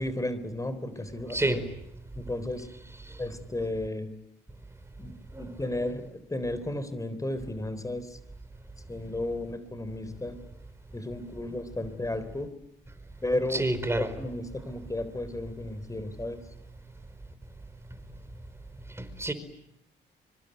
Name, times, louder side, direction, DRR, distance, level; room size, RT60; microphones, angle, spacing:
voice 1, 0.0-1.6 2.2-2.7 3.2-4.1 5.0-8.2 8.9-10.4 10.9-12.5 13.2-13.7 13.9-16.4, left 1 dB, 15° left, 3.8 m, -33 dB
voice 2, 1.3-1.6 13.5-14.1 19.0-19.3, right 1 dB, 15° right, 4.9 m, -28 dB
25.0 x 24.5 x 9.3 m
cardioid pair, 90°, 20 cm